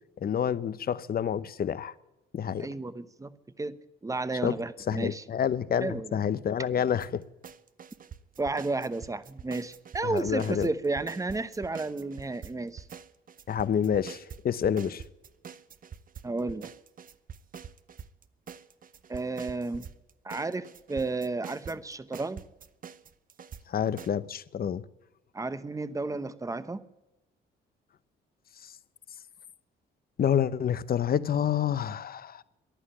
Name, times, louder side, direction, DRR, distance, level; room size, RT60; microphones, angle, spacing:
voice 1, 0.2-1.9 2.3-2.7 4.4-4.5 4.9-7.2 10.0-10.7 13.5-15.0 23.7-24.8 30.2-32.4, left 8 dB, 50° left, 0.8 m, -28 dB
voice 2, 2.6-3.3 3.6-3.7 4.0-5.2 5.8-6.2 8.4-12.8 16.2-16.7 19.1-19.9 20.2-22.4 25.3-26.8, right 3 dB, 15° right, 1.0 m, -32 dB
sound 1, 7.0-7.1 7.4-12.5 12.8-23.6 24.0-24.1, right 7 dB, 45° right, 0.8 m, -45 dB
15.0 x 11.0 x 8.8 m
cardioid pair, 90°, 20 cm